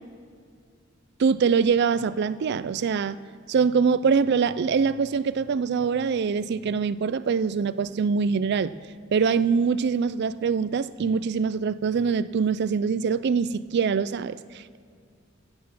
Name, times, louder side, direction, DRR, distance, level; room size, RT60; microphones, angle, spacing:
voice 1, 1.2-3.2 3.5-8.7 9.1-14.8, right 5 dB, 55° right, 15 dB, 0.4 m, -24 dB
16.5 x 9.6 x 6.0 m, 2.2 s
head